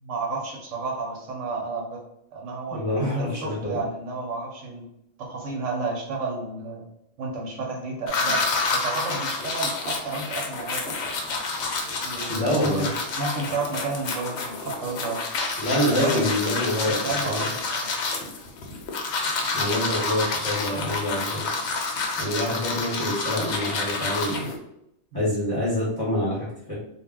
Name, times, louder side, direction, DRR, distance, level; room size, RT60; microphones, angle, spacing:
voice 1, 0.0-2.0 2.3-4.8 5.2-6.9 7.2-8.4 8.7-11.0 12.0-12.9 13.1-15.2 16.0-16.2 16.9-17.9 25.1-25.3, right 3 dB, 70° right, -1 dB, 0.9 m, -31 dB
voice 2, 2.7-3.8 12.3-12.9 15.6-17.5 19.5-21.5 22.2-24.5 25.1-26.7, left 1 dB, 25° left, -6 dB, 0.6 m, -26 dB
sound 1, 8.1-24.6, left 3 dB, 65° left, 0.7 m, -29 dB
2.3 x 2.0 x 3.4 m, 0.79 s
omnidirectional pair, 1.5 m